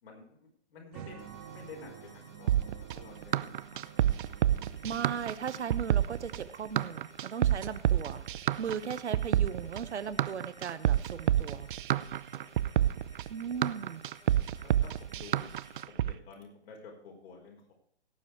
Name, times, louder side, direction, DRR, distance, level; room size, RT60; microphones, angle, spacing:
voice 1, 0.0-1.2 1.5-4.2 4.7-4.9 9.0-9.1 12.3-12.9 14.4-17.7, left 4 dB, 60° left, -1 dB, 5.2 m, -52 dB
sound 1, 0.9-6.1, right 10 dB, 30° right, 1.4 m, -50 dB
sound 2, 1.2-15.8, left 3 dB, 80° left, 4.1 m, -59 dB
sound 3, 2.5-16.1, right 11 dB, 45° right, 0.6 m, -28 dB
voice 2, 4.8-8.3 8.6-11.7 13.3-14.0, right 7 dB, 75° right, 13 dB, 1.2 m, -37 dB
17.0 x 7.6 x 4.7 m, 0.66 s
hypercardioid pair, 135°, 35 cm